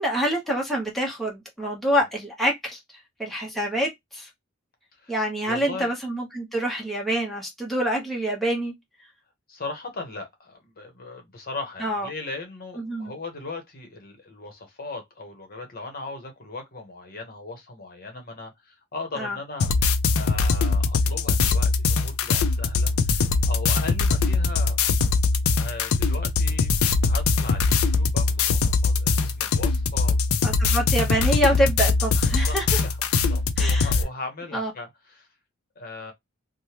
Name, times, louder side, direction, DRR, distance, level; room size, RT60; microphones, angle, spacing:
voice 1, 0.0-2.8 3.2-4.3 5.1-8.7 11.8-12.1 12.8-13.1 19.2-19.4 30.4-32.7 33.6-33.9 34.5-34.7, equal, ahead, 0.8 m, -26 dB
voice 2, 5.5-6.0 9.5-19.7 20.1-24.8 25.6-26.7 27.0-30.2 32.3-35.3 35.8-36.1, left 3 dB, 45° left, 0.9 m, -38 dB
sound 1, 19.6-34.0, left 4 dB, 85° left, 0.4 m, -22 dB
3.2 x 2.1 x 2.8 m
head